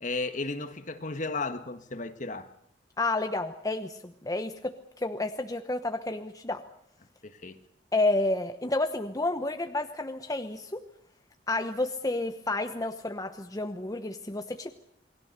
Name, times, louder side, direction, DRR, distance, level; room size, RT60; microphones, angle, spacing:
voice 1, 0.0-2.5 7.2-7.6, left 3 dB, 45° left, 1.7 m, -34 dB
voice 2, 3.0-6.6 7.9-10.8 11.5-14.7, left 2 dB, 20° left, 1.0 m, -30 dB
28.0 x 20.5 x 6.8 m
head